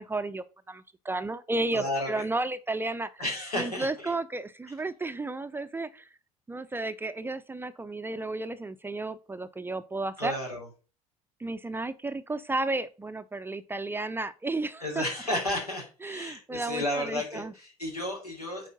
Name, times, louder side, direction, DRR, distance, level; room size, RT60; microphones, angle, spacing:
voice 1, 0.0-3.1 3.6-6.1 6.5-10.4 11.4-15.0 16.0-17.5, right 2 dB, 10° right, 0.6 m, -33 dB
voice 2, 1.7-2.2 3.2-4.1 10.2-10.7 14.8-18.7, left 1 dB, 85° left, 3.1 m, -32 dB
9.0 x 4.5 x 3.9 m
figure-of-eight pair, 65°, 19 cm